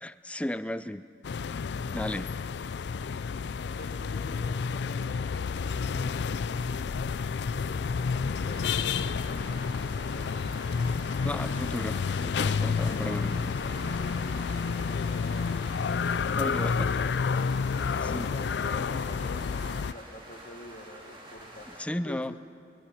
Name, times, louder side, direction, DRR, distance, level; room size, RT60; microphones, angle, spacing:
voice 1, 0.0-1.1 1.9-2.3 11.2-13.6 16.3-17.0 18.1-18.3 21.8-22.3, left 1 dB, 5° left, 13 dB, 0.5 m, -34 dB
sound 1, 1.2-19.9, left 5 dB, 65° left, 0.4 m, -30 dB
voice 2, 3.7-6.9 7.5-10.5 12.6-17.1 17.9-21.7 22.0-22.4, left 1 dB, 50° left, 3 dB, 1.7 m, -46 dB
sound 2, 8.5-21.8, right 1 dB, 30° right, 2.9 m, -47 dB
22.5 x 21.5 x 5.8 m, 2.4 s
head